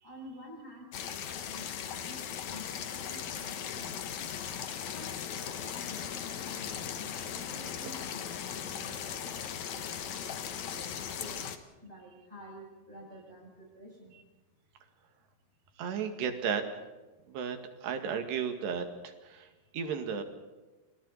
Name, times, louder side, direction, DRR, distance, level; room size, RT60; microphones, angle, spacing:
voice 1, 0.0-4.3 4.8-8.2 8.5-11.5 11.8-14.1, equal, 15° right, -2 dB, 8.1 m, -50 dB
sound 1, 0.9-11.6, left 8 dB, 60° left, 2.2 m, -38 dB
voice 2, 15.8-16.6 17.3-20.2, right 6 dB, 85° right, 6 dB, 4.3 m, -34 dB
30.0 x 27.0 x 4.2 m, 1.2 s
omnidirectional pair, 4.7 m